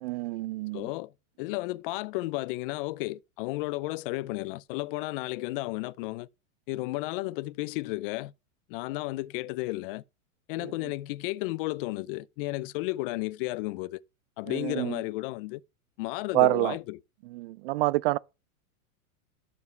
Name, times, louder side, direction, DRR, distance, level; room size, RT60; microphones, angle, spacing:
voice 1, 0.0-0.9 10.6-10.7 14.5-15.0 16.3-16.7 17.3-18.2, right 18 dB, 45° right, 0.5 m, -27 dB
voice 2, 0.7-1.1 1.4-6.3 6.7-8.3 8.7-10.0 10.5-14.0 14.4-15.6 16.0-17.0, left 20 dB, 40° left, 0.5 m, -33 dB
11.0 x 7.1 x 3.2 m
hypercardioid pair, 130°, 43 cm